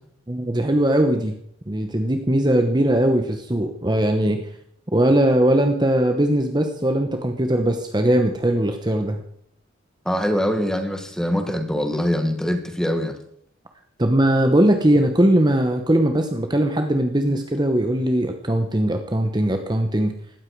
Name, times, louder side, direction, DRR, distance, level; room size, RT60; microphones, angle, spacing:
voice 1, 0.3-1.4 1.7-4.5 4.9-9.2 14.0-20.1, right 1 dB, 20° right, 5 dB, 1.0 m, -20 dB
voice 2, 10.0-13.2 17.3-17.4, equal, 5° left, 6 dB, 1.6 m, -23 dB
16.5 x 13.0 x 4.7 m, 0.67 s
head